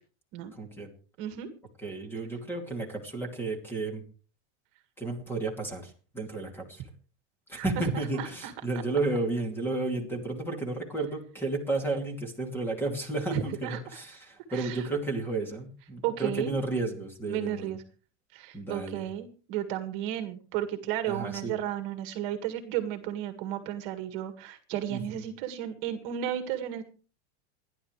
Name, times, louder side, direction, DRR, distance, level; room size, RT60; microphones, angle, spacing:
voice 1, 0.6-0.9 1.8-4.0 5.0-6.8 7.5-17.7 18.5-19.1 21.1-21.6 24.9-25.2, right 2 dB, 5° left, 4 dB, 2.6 m, -32 dB
voice 2, 1.2-1.5 7.6-8.5 13.3-13.8 14.5-14.9 16.0-16.5 17.3-17.8 18.3-26.8, right 11 dB, 35° right, 7 dB, 2.0 m, -33 dB
27.0 x 11.0 x 3.3 m, 0.38 s
supercardioid pair, 170°, 34 cm